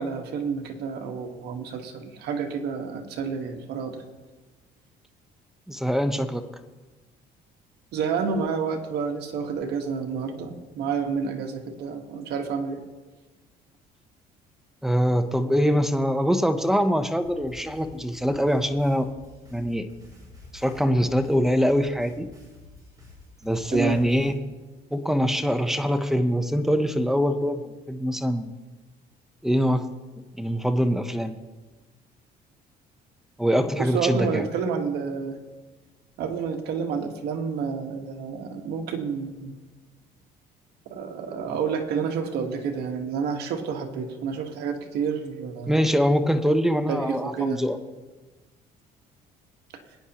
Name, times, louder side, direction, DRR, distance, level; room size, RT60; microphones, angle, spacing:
voice 1, 0.0-4.0 7.9-12.8 23.7-24.0 33.8-35.4 36.2-39.6 40.8-45.8 46.9-47.6, right 6 dB, 75° right, 3 dB, 1.5 m, -29 dB
voice 2, 5.7-6.4 14.8-19.1 19.5-19.9 20.5-22.3 23.4-24.3 24.9-28.5 29.4-29.8 30.2-31.4 33.4-34.4 45.7-47.8, equal, ahead, 8 dB, 0.8 m, -23 dB
sound 1, 17.2-24.3, left 3 dB, 20° right, 4.8 m, -49 dB
21.0 x 9.8 x 3.0 m, 1.3 s
cardioid pair, 110°, 17 cm